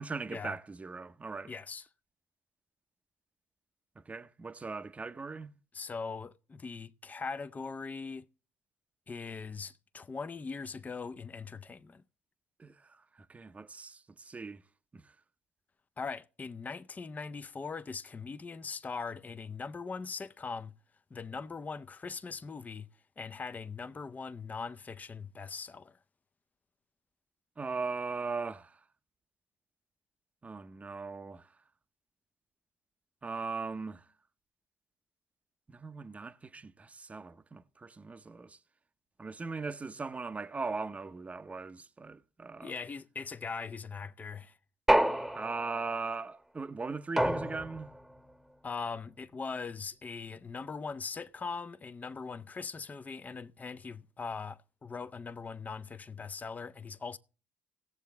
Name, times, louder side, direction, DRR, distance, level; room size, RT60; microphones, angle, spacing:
voice 1, 0.0-1.5 4.0-5.5 12.6-14.6 14.9-15.1 27.6-28.8 30.4-31.5 33.2-34.0 35.7-38.6 39.2-42.7 45.3-47.9, right 4 dB, 25° right, 0.7 m, -39 dB
voice 2, 1.4-1.9 5.7-8.3 9.1-12.0 16.0-20.7 21.1-22.9 23.2-26.0 42.6-44.6 48.6-57.2, left 5 dB, 25° left, 0.6 m, -40 dB
sound 1, 44.9-45.9 47.2-48.0, right 1 dB, 5° right, 1.1 m, -28 dB
17.5 x 7.4 x 3.4 m
supercardioid pair, 65°, 6 cm